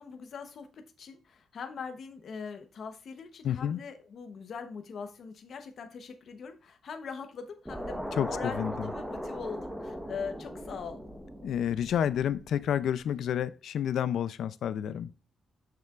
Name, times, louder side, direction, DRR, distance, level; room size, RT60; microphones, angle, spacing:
voice 1, 0.0-11.0, left 5 dB, 60° left, 0.9 m, -42 dB
voice 2, 3.4-3.8 8.2-8.9 11.4-15.1, left 9 dB, 80° left, 0.4 m, -30 dB
sound 1, 7.7-12.9, equal, ahead, 1.0 m, -39 dB
6.7 x 6.4 x 2.4 m
cardioid pair, 100°, 0 cm